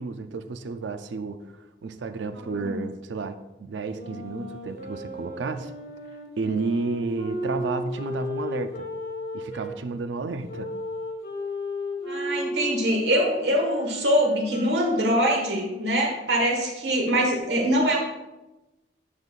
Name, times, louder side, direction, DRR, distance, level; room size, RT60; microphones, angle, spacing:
voice 1, 0.0-5.7 6.4-8.9 9.3-10.7, right 4 dB, 85° right, 9 dB, 0.4 m, -31 dB
voice 2, 2.4-2.8 12.0-18.0, equal, 70° right, 0 dB, 1.4 m, -23 dB
sound 1, 3.9-9.7 10.4-16.1, left 1 dB, 60° left, 1.5 m, -35 dB
9.8 x 5.3 x 2.4 m, 1.0 s
head